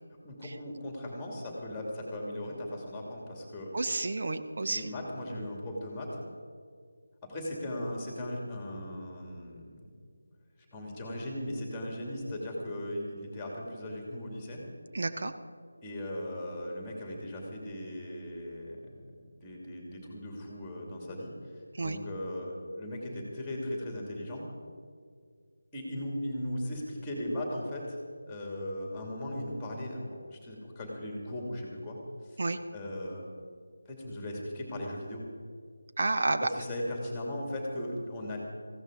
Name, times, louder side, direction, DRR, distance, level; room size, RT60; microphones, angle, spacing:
voice 1, 0.2-3.7 4.6-6.2 7.2-9.8 10.7-14.6 15.8-18.8 19.4-24.5 25.7-28.0 28.3-32.0 32.2-32.4 32.7-33.2 33.9-35.2 36.4-38.4, left 1 dB, 10° left, -1 dB, 2.6 m, -38 dB
voice 2, 3.7-4.9 14.9-15.3 21.8-22.0 32.4-32.6 36.0-36.5, right 2 dB, 45° right, 8 dB, 0.8 m, -30 dB
19.0 x 15.5 x 3.9 m, 2.1 s
figure-of-eight pair, 160°, 0 cm